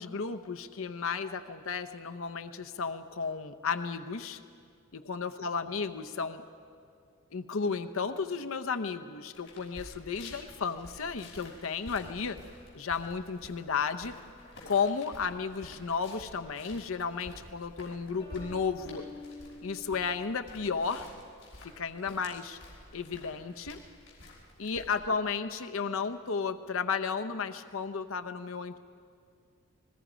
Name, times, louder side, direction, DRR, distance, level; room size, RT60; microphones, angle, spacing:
voice 1, 0.0-4.4 4.9-6.4 7.3-12.4 12.7-14.2 14.7-19.0 19.6-21.1 21.6-22.6 22.9-23.8 24.6-28.8, left 5 dB, 75° left, 8 dB, 0.7 m, -33 dB
sound 1, 9.3-25.0, left 1 dB, 55° left, 5.4 m, -51 dB
sound 2, 18.2-20.8, left 2 dB, 30° left, 6.4 m, -48 dB
29.5 x 21.0 x 5.1 m, 2.3 s
head